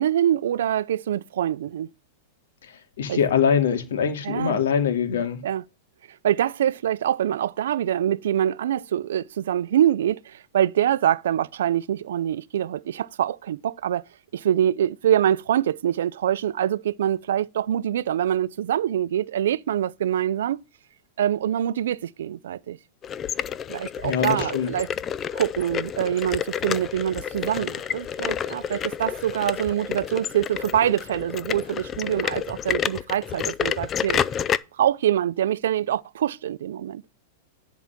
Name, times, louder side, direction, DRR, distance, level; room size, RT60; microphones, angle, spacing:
voice 1, 0.0-1.9 3.1-3.2 4.2-4.6 5.4-5.6 6.2-14.0 14.3-20.6 21.2-22.8 23.7-24.9 25.3-34.2 34.8-37.0, right 10 dB, 80° right, 0.4 m, -24 dB
voice 2, 3.0-5.4 24.0-24.7, left 7 dB, 85° left, 2.6 m, -23 dB
sound 1, 23.0-34.6, left 8 dB, 20° left, 0.4 m, -29 dB
10.5 x 4.8 x 5.8 m
supercardioid pair, 160°, 0 cm